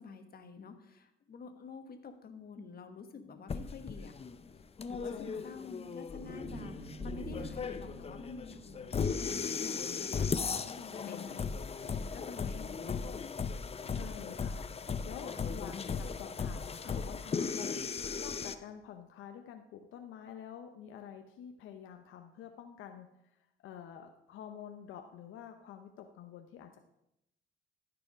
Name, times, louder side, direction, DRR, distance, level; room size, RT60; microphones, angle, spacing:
voice 1, 0.0-4.1 4.9-11.4 11.9-13.1 15.2-15.6 17.6-18.0, left 4 dB, 50° left, 7 dB, 1.3 m, -48 dB
sound 1, 3.5-18.5, left 5 dB, 30° left, 0.6 m, -37 dB
voice 2, 5.1-5.4 10.9-11.4 13.9-17.7 18.2-26.8, left 8 dB, 85° left, 6 dB, 0.7 m, -48 dB
sound 2, 6.1-10.3, left 1 dB, 10° left, 2.5 m, -46 dB
14.0 x 4.8 x 5.0 m, 0.84 s
cardioid pair, 90°, 20 cm